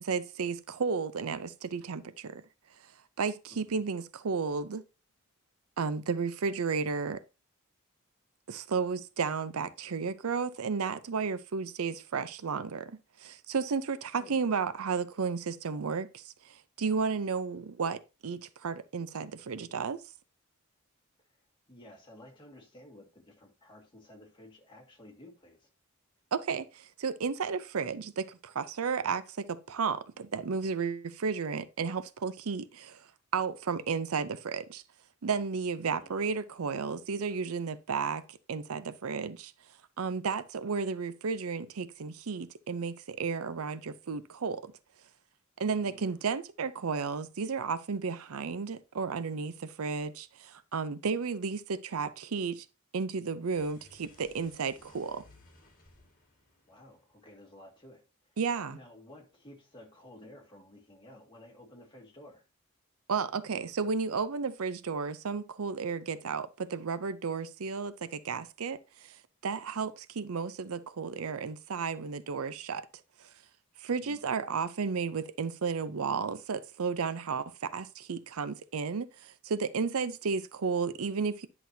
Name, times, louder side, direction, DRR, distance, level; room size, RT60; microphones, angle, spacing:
voice 1, 0.0-2.4 3.2-4.8 5.8-7.2 8.5-20.0 26.3-33.0 33.3-34.8 35.2-39.5 40.0-44.7 45.6-52.7 52.9-55.2 58.4-58.8 63.1-69.2 69.4-72.8 73.8-81.5, right 5 dB, 75° right, 0.6 m, -33 dB
voice 2, 3.5-3.8 14.1-14.5 21.3-21.4 21.7-25.7 35.8-36.1 45.8-46.2 56.7-58.4 58.7-62.4 74.0-74.3, left 1 dB, 20° left, 2.0 m, -53 dB
sound 1, 53.4-57.8, left 2 dB, 35° left, 1.9 m, -60 dB
10.5 x 6.0 x 2.7 m
head